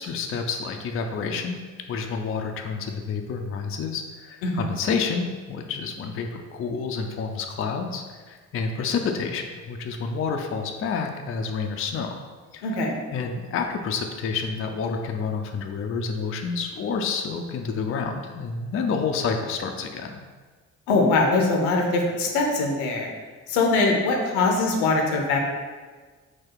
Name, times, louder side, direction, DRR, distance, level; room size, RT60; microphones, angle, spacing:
voice 1, 0.0-1.6 1.9-12.1 12.5-12.7 13.1-20.2, left 5 dB, 30° left, 4 dB, 0.5 m, -29 dB
voice 2, 12.6-13.0 20.9-23.1 23.5-25.5, left 3 dB, 75° left, 1 dB, 0.8 m, -22 dB
4.0 x 2.2 x 4.6 m, 1.4 s
hypercardioid pair, 40°, 43 cm